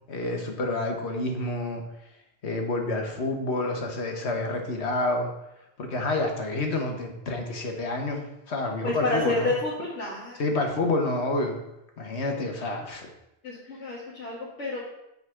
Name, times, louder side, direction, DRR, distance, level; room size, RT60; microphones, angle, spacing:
voice 1, 0.1-1.8 2.4-5.3 5.8-9.5 10.4-11.6 12.0-13.1, left 2 dB, 70° left, 2 dB, 1.6 m, -28 dB
voice 2, 8.8-10.4 13.4-14.8, left 2 dB, 90° left, -6 dB, 2.0 m, -29 dB
9.4 x 4.2 x 6.3 m, 0.88 s
omnidirectional pair, 1.2 m